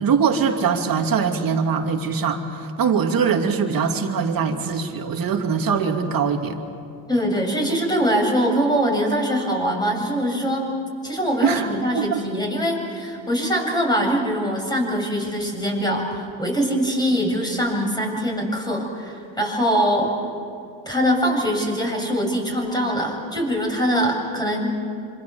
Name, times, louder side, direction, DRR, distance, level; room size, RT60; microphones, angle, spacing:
voice 1, 0.0-6.6 11.4-11.7 11.9-12.2, right 6 dB, 55° right, 4 dB, 2.7 m, -22 dB
voice 2, 7.1-10.6 11.0-20.1 20.9-24.7, equal, 10° left, 0 dB, 7.4 m, -23 dB
26.5 x 26.5 x 7.1 m, 2.6 s
cardioid pair, 95°, 42 cm